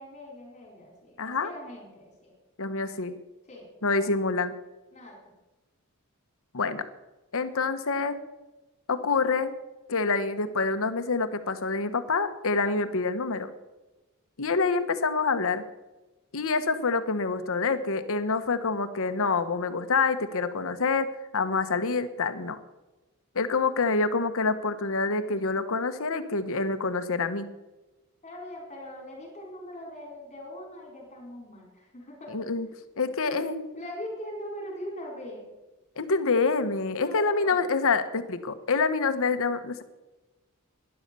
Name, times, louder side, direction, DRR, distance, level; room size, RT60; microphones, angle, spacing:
voice 1, 0.0-2.3 3.4-3.7 4.9-5.2 28.2-32.3 33.2-33.5 33.7-35.4 36.9-37.7, equal, 30° left, -2 dB, 4.6 m, -41 dB
voice 2, 1.2-1.5 2.6-3.2 3.8-4.5 6.5-6.8 7.3-8.2 8.9-9.5 9.9-13.5 14.4-15.6 16.3-22.6 23.3-27.5 32.3-32.7 33.0-33.8 36.0-39.8, left 4 dB, 65° left, 11 dB, 1.1 m, -27 dB
13.0 x 11.0 x 6.9 m, 1.1 s
head